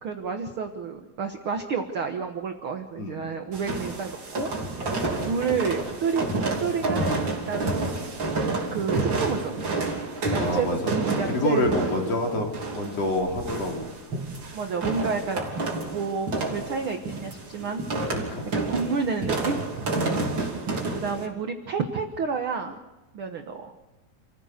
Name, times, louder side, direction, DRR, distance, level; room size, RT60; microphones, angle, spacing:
voice 1, 0.0-4.5 4.8-4.9 5.2-7.1 7.5-7.9 8.7-9.9 10.3-12.0 14.5-15.4 15.8-17.8 18.5-20.2 20.9-22.8 23.1-23.7, right 5 dB, 65° right, 5 dB, 1.4 m, -30 dB
voice 2, 3.0-3.3 10.4-10.9 11.3-13.9 18.1-18.4 19.9-20.2, left 1 dB, 45° left, 1 dB, 4.1 m, -27 dB
sound 1, 3.5-21.3, right 2 dB, 35° right, 3.5 m, -29 dB
29.0 x 15.5 x 6.7 m, 1.1 s
omnidirectional pair, 4.1 m